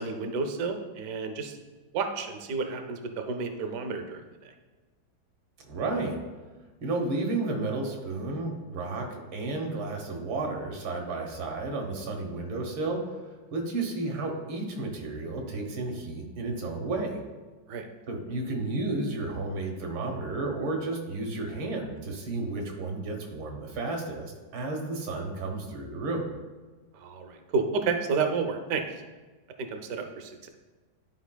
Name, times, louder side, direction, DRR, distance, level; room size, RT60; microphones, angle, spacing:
voice 1, 0.0-1.6 1.9-4.2 17.7-17.9 27.0-28.8 29.6-30.5, right 4 dB, 65° right, 6 dB, 0.9 m, -31 dB
voice 2, 5.7-6.2 6.8-13.0 13.5-17.2 18.1-26.3, right 2 dB, 85° right, 2 dB, 1.9 m, -32 dB
11.5 x 4.7 x 2.2 m, 1.3 s
omnidirectional pair, 2.1 m